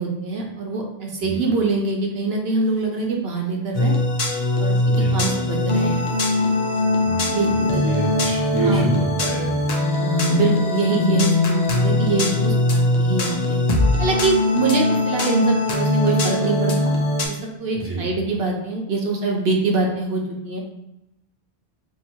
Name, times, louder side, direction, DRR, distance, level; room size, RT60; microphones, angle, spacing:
voice 1, 0.0-3.9 4.6-6.0 7.3-8.0 8.6-8.9 10.0-13.6 14.0-16.9 17.3-20.6, right 3 dB, 75° right, 0 dB, 1.0 m, -24 dB
sound 1, 3.7-17.3, left 2 dB, 50° left, 0.6 m, -21 dB
voice 2, 4.8-5.2 7.0-9.5 17.7-18.1, right 2 dB, 15° right, -5 dB, 1.0 m, -27 dB
2.7 x 2.7 x 4.3 m, 0.87 s
omnidirectional pair, 1.0 m